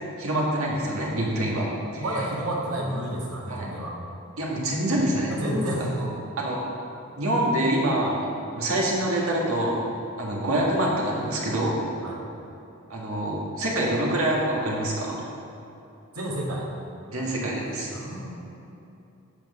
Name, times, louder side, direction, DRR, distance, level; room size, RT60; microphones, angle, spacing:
voice 1, 0.2-2.0 3.5-3.7 4.4-5.3 6.0-6.1 6.4-6.6 7.2-9.9 10.2-11.8 12.9-15.2 17.1-17.9, right 1 dB, 70° right, -3 dB, 1.8 m, -26 dB
voice 2, 2.0-4.0 5.3-6.0 12.0-12.2 16.1-16.7 17.9-18.4, right 1 dB, 90° right, -3 dB, 1.8 m, -30 dB
8.4 x 5.9 x 5.5 m, 2.8 s
head